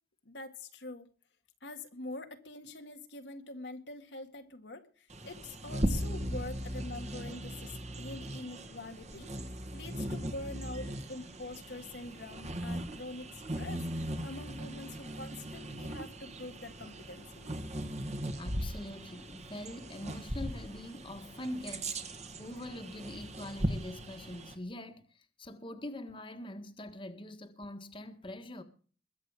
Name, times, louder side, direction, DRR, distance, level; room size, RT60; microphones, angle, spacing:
voice 1, 0.3-1.1 1.6-9.3 9.7-17.6, left 2 dB, 90° left, 2.0 m, -45 dB
Bird vocalization bird call bird song, 5.1-24.6, right 1 dB, 40° right, 2.0 m, -39 dB
voice 2, 18.4-28.6, left 1 dB, 30° left, 1.6 m, -44 dB
22.0 x 8.1 x 4.9 m
head